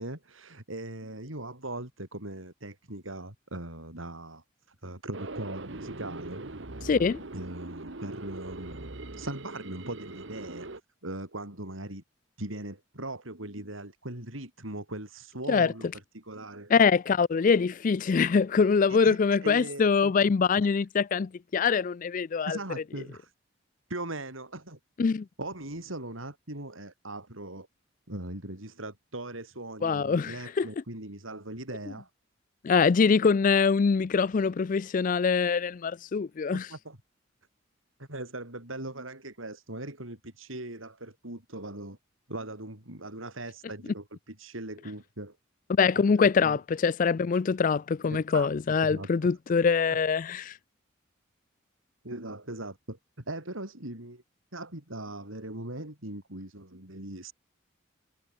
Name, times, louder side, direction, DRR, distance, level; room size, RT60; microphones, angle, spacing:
voice 1, 0.0-4.4 4.8-6.4 7.3-10.7 11.0-12.0 12.4-15.9 16.1-16.7 18.9-20.1 22.5-23.3 23.9-24.8 25.4-27.7 28.1-32.1 36.5-37.0 38.0-42.0 42.3-45.4 46.2-46.6 48.1-49.1 49.9-50.0 52.0-53.0 53.3-54.2 54.5-57.3, right 1 dB, 85° right, 6.4 m, -40 dB
sound 1, 5.1-10.8, right 2 dB, 65° right, 1.6 m, -41 dB
voice 2, 6.8-7.2 15.5-15.7 16.7-22.6 25.0-25.3 29.8-30.7 32.6-36.7 45.7-50.5, left 5 dB, 40° left, 0.4 m, -24 dB
head